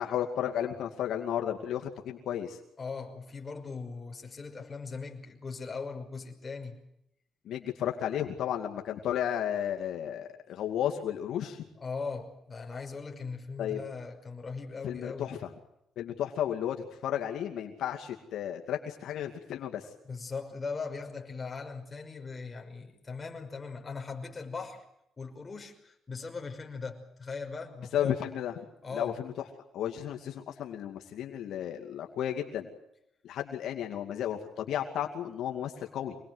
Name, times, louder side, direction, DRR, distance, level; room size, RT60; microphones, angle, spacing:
voice 1, 0.0-2.6 7.5-11.6 13.6-13.8 14.8-15.4 16.0-16.8 17.0-19.9 27.9-28.5 28.9-29.3 29.7-32.7 33.2-36.2, left 10 dB, 75° left, 3 dB, 2.4 m, -33 dB
voice 2, 2.8-6.8 11.8-15.3 20.1-24.8 25.2-28.2 28.8-29.2, left 4 dB, 30° left, 3 dB, 5.8 m, -39 dB
26.5 x 20.0 x 8.0 m, 0.78 s
cardioid pair, 90°, 0 cm